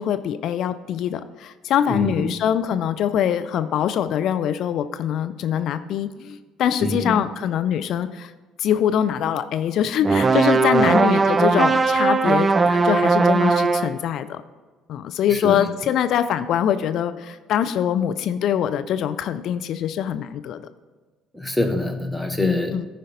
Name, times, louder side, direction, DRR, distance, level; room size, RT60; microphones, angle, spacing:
voice 1, 0.0-8.3 8.6-14.4 14.9-20.6 22.4-22.9, left 9 dB, 55° left, 11 dB, 0.4 m, -23 dB
voice 2, 1.9-2.3 6.8-7.1 10.8-10.9 15.3-15.7 21.3-22.9, left 1 dB, 5° left, 4 dB, 0.8 m, -25 dB
sound 1, 10.0-14.0, right 4 dB, 25° right, 0.4 m, -18 dB
13.5 x 5.2 x 3.9 m, 1.3 s
figure-of-eight pair, 50°, 0 cm